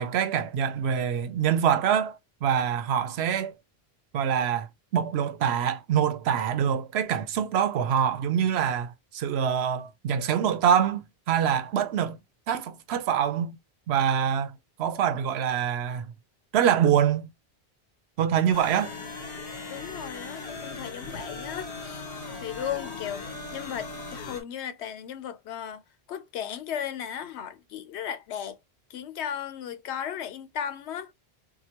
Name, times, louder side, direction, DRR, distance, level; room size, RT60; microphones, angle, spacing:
voice 1, 0.0-3.5 4.1-4.7 4.9-12.2 12.5-13.6 13.9-16.1 16.5-17.3 18.2-18.9, right 8 dB, 80° right, 0.8 m, -25 dB
sound 1, 18.5-24.4, left 3 dB, 65° left, 1.4 m, -38 dB
voice 2, 19.7-22.0 22.4-25.8 26.1-28.6 28.9-31.1, left 9 dB, 90° left, 0.9 m, -36 dB
4.6 x 2.2 x 2.8 m
omnidirectional pair, 1.1 m